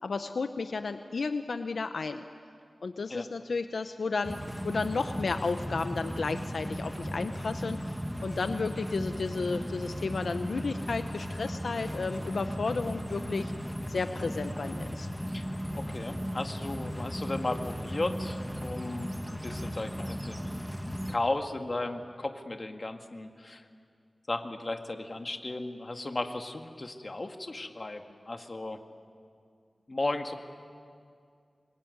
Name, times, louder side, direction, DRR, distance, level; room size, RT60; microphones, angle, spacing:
voice 1, 0.0-2.2 2.8-13.5 13.9-15.1, left 4 dB, 80° left, 8 dB, 0.8 m, -33 dB
sound 1, 4.2-21.2, equal, ahead, 1.6 m, -36 dB
voice 2, 15.7-20.5 21.1-23.6 24.3-28.8 29.9-30.4, left 2 dB, 40° left, 5 dB, 2.0 m, -35 dB
26.5 x 22.5 x 9.6 m, 2.3 s
wide cardioid pair, 75°, 0 cm